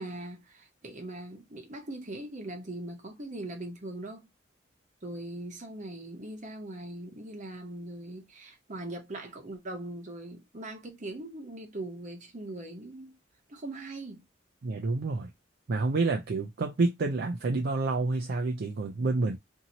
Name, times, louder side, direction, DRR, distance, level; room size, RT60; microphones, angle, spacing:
voice 1, 0.0-4.3 5.0-13.2 13.5-14.2, right 1 dB, 40° right, 0.9 m, -40 dB
voice 2, 14.6-15.3 15.7-19.4, right 3 dB, 55° right, 0.4 m, -28 dB
2.7 x 2.7 x 2.8 m
head